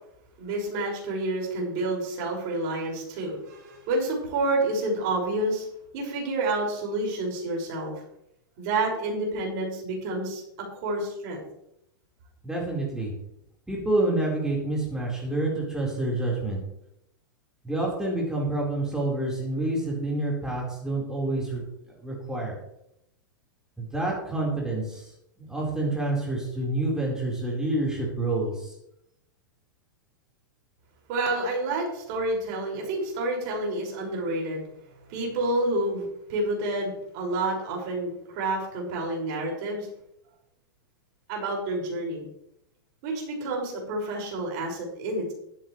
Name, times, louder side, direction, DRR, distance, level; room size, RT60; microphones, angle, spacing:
voice 1, 0.4-5.7 5.9-7.9 8.6-11.4 31.1-34.6 35.1-39.9 41.3-42.3 43.0-45.3, right 2 dB, 50° right, -1 dB, 5.9 m, -29 dB
voice 2, 12.4-13.1 13.7-16.6 17.6-21.6 22.0-22.5 23.8-25.1 25.4-28.7, right 2 dB, 5° right, -3 dB, 4.5 m, -28 dB
14.0 x 13.0 x 3.3 m, 0.78 s
hypercardioid pair, 105°, 11 cm